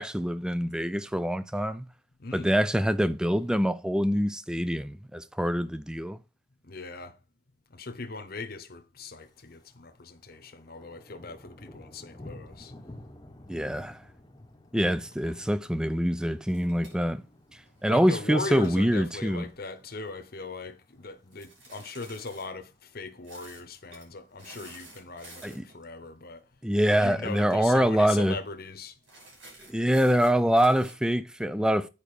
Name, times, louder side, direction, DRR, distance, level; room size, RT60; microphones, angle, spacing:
voice 1, 0.0-1.9 2.3-6.2 13.5-14.0 14.7-17.2 17.8-19.5 25.4-25.7 26.6-28.4 29.7-31.9, equal, 5° right, 0.3 m, -25 dB
voice 2, 6.7-7.1 7.7-12.7 17.9-26.4 27.0-28.9, left 3 dB, 50° left, 1.0 m, -39 dB
Thunder, 9.2-9.8 10.1-20.4 20.8-21.1 21.6-22.0 22.3-22.4 22.6-22.7 23.0-23.6 24.4-25.3, left 1 dB, 20° left, 1.0 m, -51 dB
sound 1, 16.4-18.0 18.5-20.0 21.3-22.5 23.2-23.6 23.9-24.1 24.4-25.8 27.1-27.3 27.6-27.7 28.0-28.4 29.0-30.9, right 2 dB, 75° right, 5.6 m, -51 dB
8.8 x 5.0 x 4.9 m
head